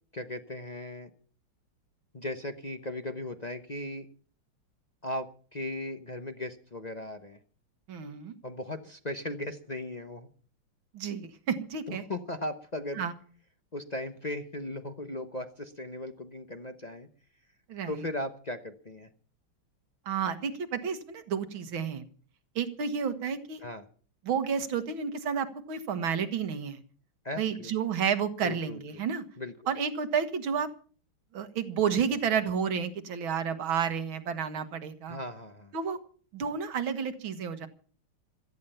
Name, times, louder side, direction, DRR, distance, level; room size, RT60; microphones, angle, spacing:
voice 1, 0.1-1.1 2.1-4.1 5.0-7.4 8.4-10.3 11.9-13.0 13.7-17.1 17.9-19.1 23.6-23.8 27.2-27.7 28.4-29.0 29.4-29.5 35.1-35.7, left 1 dB, 35° left, 6 dB, 0.7 m, -37 dB
voice 2, 7.9-8.3 10.9-12.0 13.0-13.1 17.7-18.0 20.1-22.0 22.6-23.7 24.2-26.8 27.4-29.2 29.7-30.7 31.3-35.2 35.7-36.0 36.3-37.7, right 7 dB, 70° right, 10 dB, 2.3 m, -31 dB
17.0 x 13.5 x 5.7 m, 0.43 s
omnidirectional pair, 2.3 m